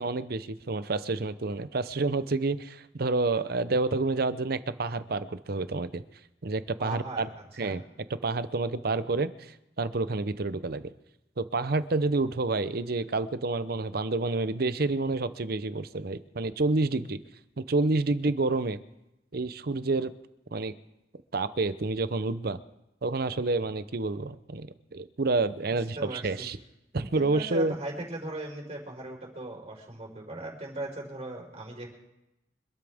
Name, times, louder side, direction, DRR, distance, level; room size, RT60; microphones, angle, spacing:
voice 1, 0.0-6.0 6.4-7.3 7.6-7.8 8.1-10.8 11.4-17.2 17.6-18.8 19.3-20.1 20.5-20.7 21.3-22.6 23.0-26.6 26.9-27.7, right 3 dB, 55° right, 13 dB, 0.7 m, -29 dB
voice 2, 6.8-7.2 7.6-7.8 25.7-26.5 26.9-31.9, right 2 dB, 35° right, -1 dB, 4.6 m, -38 dB
25.5 x 13.0 x 3.6 m, 0.91 s
head